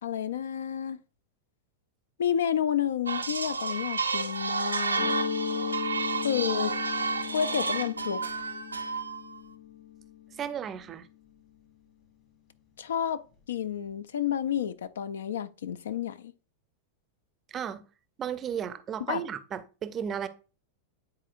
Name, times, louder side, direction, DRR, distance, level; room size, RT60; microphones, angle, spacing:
voice 1, 0.0-1.0 2.2-5.1 6.2-6.7 7.3-8.2 12.8-16.3 19.1-19.2, left 9 dB, 65° left, 0.3 m, -30 dB
sound 1, 3.1-9.4, right 4 dB, 80° right, 0.5 m, -31 dB
Mallet percussion, 4.9-10.5, left 6 dB, 40° left, 1.7 m, -36 dB
voice 2, 10.4-11.1 17.5-17.8 18.2-20.3, right 8 dB, 25° right, 0.5 m, -34 dB
9.7 x 4.1 x 2.4 m
figure-of-eight pair, 90°, 0 cm